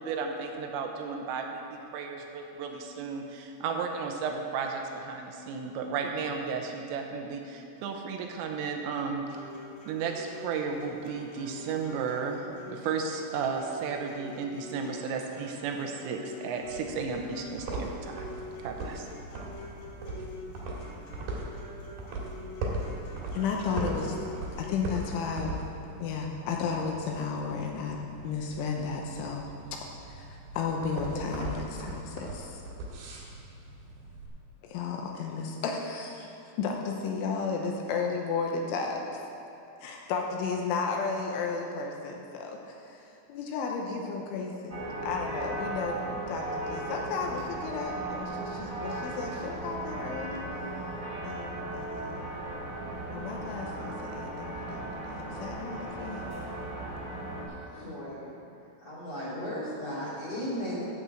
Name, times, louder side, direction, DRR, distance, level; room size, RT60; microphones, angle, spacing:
voice 1, 0.0-9.2 9.9-18.3 18.6-19.1, right 5 dB, 85° right, 3 dB, 3.4 m, -34 dB
sound 1, 9.3-25.3, left 1 dB, 55° left, 3.7 m, -46 dB
sound 2, 16.6-34.3, right 2 dB, 60° right, 2.9 m, -39 dB
voice 2, 23.3-24.2 24.6-25.5 26.0-29.5 30.1-32.6 34.6-39.2 39.8-46.0 46.3-50.5 51.2-52.3 53.1-56.3, left 5 dB, 80° left, 1 dB, 3.1 m, -33 dB
sound 3, 44.7-57.4, right 2 dB, 20° right, 2.1 m, -37 dB
voice 3, 57.5-58.3 58.8-60.8, equal, 40° left, -7 dB, 2.9 m, -36 dB
12.5 x 5.4 x 7.7 m, 2.8 s
omnidirectional pair, 5.9 m